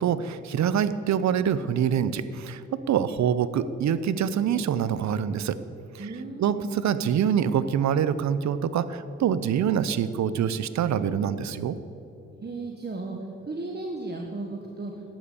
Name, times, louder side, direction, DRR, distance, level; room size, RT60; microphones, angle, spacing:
voice 1, 0.0-5.6 5.9-6.1 6.4-11.8, right 8 dB, 65° right, 14 dB, 0.8 m, -25 dB
voice 2, 6.0-6.4 12.3-15.1, right 2 dB, 35° right, 2 dB, 1.5 m, -35 dB
12.0 x 10.5 x 7.0 m, 2.9 s
supercardioid pair, 50°, 30 cm